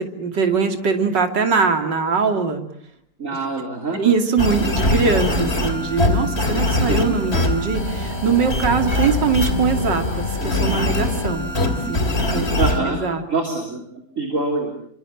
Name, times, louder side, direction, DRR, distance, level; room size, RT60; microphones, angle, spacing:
voice 1, 0.0-2.6 3.9-11.5 11.9-12.1 12.3-12.4 12.9-13.2, right 5 dB, 60° right, 6 dB, 3.3 m, -21 dB
voice 2, 3.2-4.0 6.9-7.0 12.6-13.0 13.3-13.8 14.2-14.7, right 3 dB, 40° right, 2 dB, 3.9 m, -24 dB
sound 1, 4.4-12.8, left 2 dB, 30° left, 3.1 m, -22 dB
28.5 x 24.5 x 7.4 m, 0.65 s
omnidirectional pair, 2.1 m